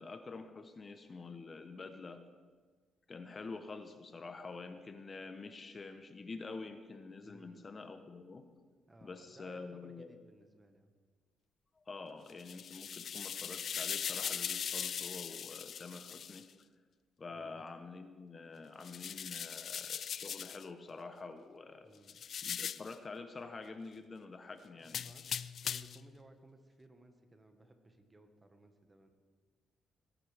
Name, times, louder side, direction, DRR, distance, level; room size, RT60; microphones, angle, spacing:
voice 1, 0.0-2.2 3.1-8.4 9.0-10.1 11.7-16.4 17.2-21.9 22.4-25.0, left 4 dB, 35° left, 8 dB, 0.9 m, -47 dB
voice 2, 7.2-7.6 8.9-10.9 17.3-17.6 21.8-22.3 24.8-29.1, right 2 dB, 20° right, 6 dB, 1.5 m, -60 dB
sound 1, 12.3-16.4 18.8-20.6 22.1-22.9 24.9-26.0, left 8 dB, 55° left, 0.4 m, -40 dB
19.5 x 11.0 x 3.5 m, 1.5 s
cardioid pair, 90°, 0 cm